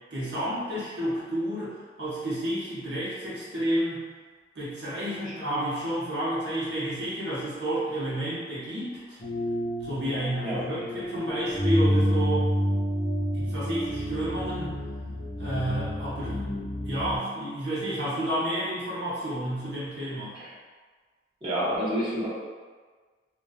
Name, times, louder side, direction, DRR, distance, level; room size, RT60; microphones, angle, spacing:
voice 1, 0.1-4.1 4.5-9.2 9.8-12.5 13.3-14.8 15.4-16.4 16.8-20.4, right 1 dB, 75° right, -9 dB, 0.8 m, -30 dB
sound 1, 9.2-17.2, equal, 35° left, 0.5 m, -29 dB
voice 2, 21.4-22.3, equal, 25° right, -12 dB, 0.9 m, -28 dB
2.6 x 2.2 x 2.3 m, 1.4 s
head